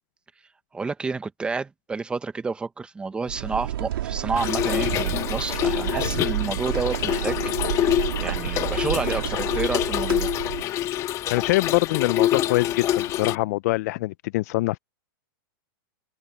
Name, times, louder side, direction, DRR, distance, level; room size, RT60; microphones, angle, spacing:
voice 1, 0.7-10.3, right 4 dB, 10° right, 1.0 m, -30 dB
sound 1, 3.3-10.6, right 12 dB, 75° right, 3.6 m, -30 dB
Trickle dribble / Fill (with liquid), 4.4-13.4, left 12 dB, 25° left, 1.4 m, -26 dB
voice 2, 10.8-14.8, left 20 dB, 45° left, 0.4 m, -24 dB
supercardioid pair, 160°, 12 cm